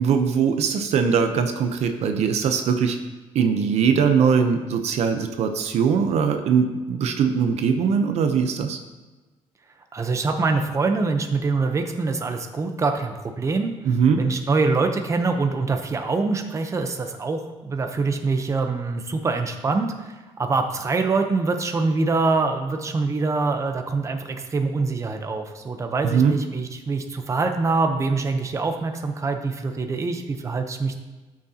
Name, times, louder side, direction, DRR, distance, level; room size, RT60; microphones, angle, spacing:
voice 1, 0.0-3.0 3.3-8.8 13.8-14.2 26.0-26.4, right 6 dB, 70° right, 6 dB, 0.8 m, -21 dB
voice 2, 9.9-13.7 14.2-31.0, right 3 dB, 25° right, 5 dB, 0.8 m, -24 dB
12.5 x 6.4 x 2.9 m, 1.2 s
cardioid pair, 115°, 11 cm